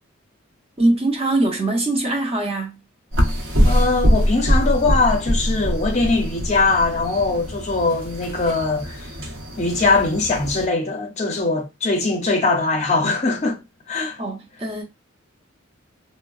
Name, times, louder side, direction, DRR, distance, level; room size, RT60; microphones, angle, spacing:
voice 1, 0.8-2.8 14.2-14.8, right 2 dB, 30° right, 0.6 m, -22 dB
sound 1, 3.1-10.7, equal, 65° right, 0.8 m, -23 dB
voice 2, 3.6-9.1 9.6-13.6 13.9-14.2, left 3 dB, 35° left, 0.5 m, -21 dB
3.5 x 2.0 x 2.3 m
head